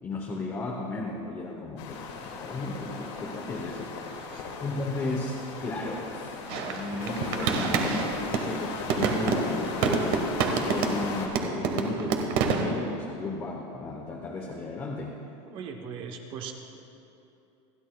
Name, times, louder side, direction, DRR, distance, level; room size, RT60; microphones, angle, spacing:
voice 1, 0.0-3.9 4.6-15.2, left 2 dB, 15° left, 0 dB, 0.9 m, -35 dB
sound 1, 1.8-11.3, left 4 dB, 75° left, 2.2 m, -37 dB
sound 2, 6.5-8.5 8.9-11.1 11.4-12.7, right 5 dB, 50° right, 1.3 m, -27 dB
voice 2, 15.5-16.5, right 6 dB, 35° right, 4 dB, 0.9 m, -39 dB
28.5 x 11.0 x 2.3 m, 2.8 s
supercardioid pair, 170°, 15 cm